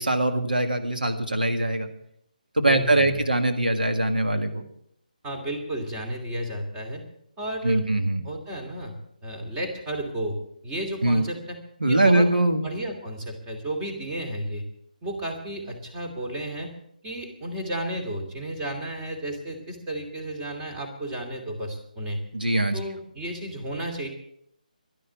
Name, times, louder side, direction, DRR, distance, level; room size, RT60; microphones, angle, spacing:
voice 1, 0.0-1.9 2.6-4.6 7.6-8.2 11.0-11.3 11.8-12.7 22.3-22.8, right 1 dB, 85° right, 6 dB, 1.8 m, -22 dB
voice 2, 2.6-3.2 5.2-7.0 7.4-7.8 8.2-10.4 10.6-11.6 11.8-12.3 12.6-14.7 15.0-16.7 17.0-22.2 22.7-24.1, right 1 dB, 15° right, 1 dB, 2.6 m, -32 dB
12.0 x 11.5 x 8.1 m, 0.70 s
figure-of-eight pair, 150°, 5 cm